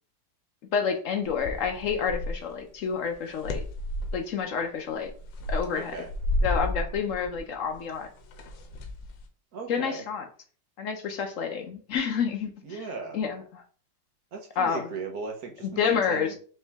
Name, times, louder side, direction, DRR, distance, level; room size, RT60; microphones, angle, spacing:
voice 1, 0.7-3.6 4.1-5.1 5.5-5.9 6.4-8.1 9.7-10.2 10.8-12.8 13.1-13.6 14.6-14.8 15.8-16.3, left 6 dB, 70° left, 5 dB, 0.7 m, -29 dB
sound 1, 1.2-2.6 3.1-4.3 4.9-9.2, left 1 dB, 85° left, 1.5 m, -32 dB
voice 2, 5.7-6.1 9.5-10.0 12.6-13.2 14.3-16.3, right 4 dB, 60° right, 1 dB, 1.2 m, -37 dB
4.5 x 3.2 x 3.4 m, 0.42 s
omnidirectional pair, 2.0 m